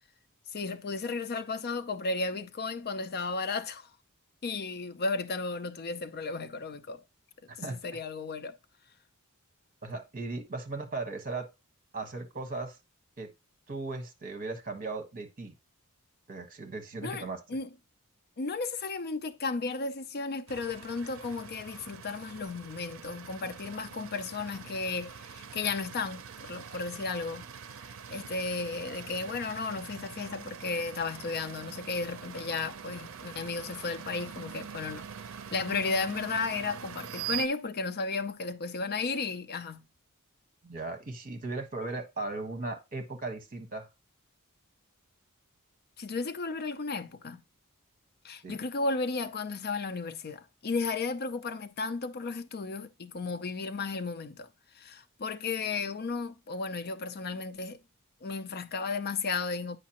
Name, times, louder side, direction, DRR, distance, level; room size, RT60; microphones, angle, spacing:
voice 1, 0.5-3.9 4.4-7.0 7.6-8.6 17.0-17.7 18.4-27.5 27.8-39.9 46.0-47.4 48.2-54.5 54.7-57.8 58.2-59.8, left 4 dB, 45° left, 0.5 m, -34 dB
voice 2, 9.8-11.5 11.9-12.8 13.2-13.3 13.7-15.5 16.3-17.4 40.6-43.9 48.4-48.6, right 3 dB, 40° right, 1.2 m, -37 dB
sound 1, 20.5-37.5, right 8 dB, 65° right, 0.6 m, -44 dB
8.3 x 5.2 x 2.9 m
head